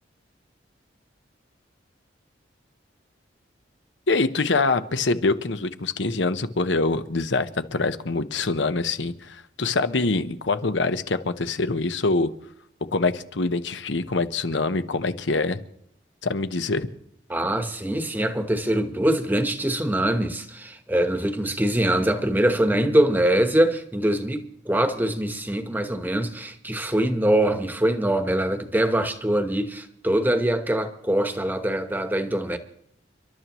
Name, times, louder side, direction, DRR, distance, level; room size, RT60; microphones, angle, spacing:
voice 1, 4.1-12.3 12.9-15.6 16.2-16.9, left 3 dB, 75° left, 1.0 m, -24 dB
voice 2, 17.3-32.6, right 1 dB, 10° right, 1.1 m, -23 dB
30.0 x 12.5 x 3.1 m
head